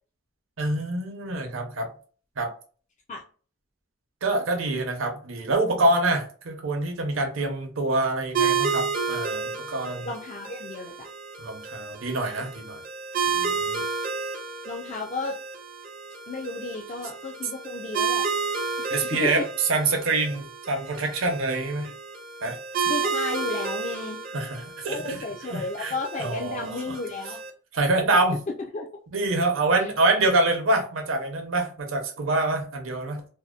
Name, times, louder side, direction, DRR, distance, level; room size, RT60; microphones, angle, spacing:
voice 1, 0.6-1.9 2.4-2.5 4.2-10.1 11.4-12.8 13.2-13.8 18.9-21.9 22.4-22.6 24.3-25.2 25.5-25.9 26.2-27.0 27.7-28.4 29.1-33.3, right 2 dB, 80° right, 0.7 m, -26 dB
sound 1, 8.3-27.5, right 5 dB, 45° right, 0.4 m, -31 dB
voice 2, 9.9-11.1 14.7-15.4 16.3-18.3 19.2-19.5 22.8-24.2 24.9-27.4 28.7-28.9 29.8-29.9, left 3 dB, 35° left, 0.3 m, -33 dB
2.6 x 2.0 x 2.3 m
head